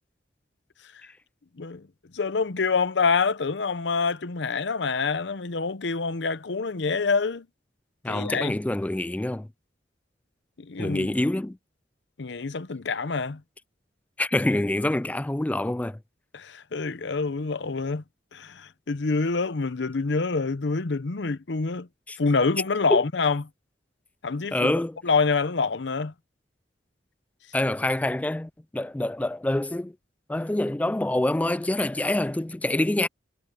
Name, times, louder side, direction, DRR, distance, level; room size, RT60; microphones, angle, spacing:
voice 1, 1.6-1.9 2.1-7.5 8.1-8.5 10.6-11.1 12.2-13.4 16.3-18.0 18.3-21.9 22.2-23.4 24.2-24.7 25.0-26.1, left 4 dB, 70° left, 0.8 m, -26 dB
voice 2, 8.0-9.5 10.8-11.6 14.2-16.0 22.1-22.2 22.9-23.0 24.5-25.0 27.5-29.9 30.3-33.1, left 1 dB, 10° left, 0.3 m, -26 dB
head